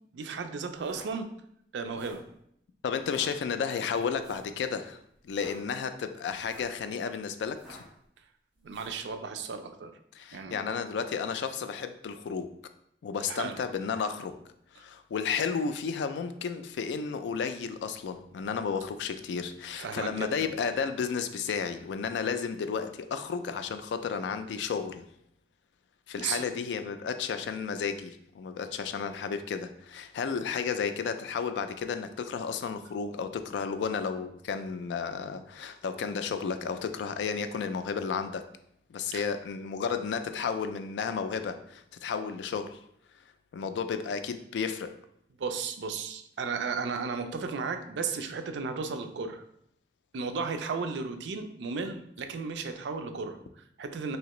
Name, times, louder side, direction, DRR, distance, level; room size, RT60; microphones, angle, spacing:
voice 1, 0.1-1.3 1.7-2.3 8.6-9.9 10.3-10.6 13.3-13.6 14.8-14.9 19.8-20.5 26.2-26.5 39.1-39.3 45.4-49.5 50.1-54.2, right 5 dB, 85° right, 7 dB, 0.4 m, -34 dB
sound 1, 0.8-1.1 1.8-2.3 3.0-3.3 4.2-4.5 5.2-5.6 6.3-6.8 7.5-8.0 8.7-9.0, right 1 dB, ahead, 1.0 m, -51 dB
voice 2, 2.8-5.0 5.2-7.8 10.2-12.5 13.0-14.3 14.7-25.0 26.1-38.4 38.9-42.8 43.5-44.9, left 6 dB, 85° left, 9 dB, 0.3 m, -32 dB
3.3 x 2.8 x 3.0 m, 0.72 s
head